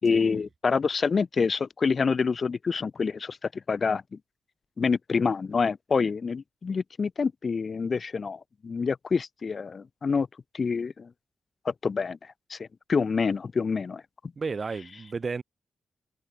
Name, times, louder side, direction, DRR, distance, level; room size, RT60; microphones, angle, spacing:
voice 1, 0.0-4.2 4.8-10.3 10.5-11.1 11.6-14.0, left 5 dB, 40° left, 4.2 m, -27 dB
voice 2, 14.4-15.4, right 4 dB, 35° right, 6.3 m, -33 dB
wide cardioid pair, 155°, 0 cm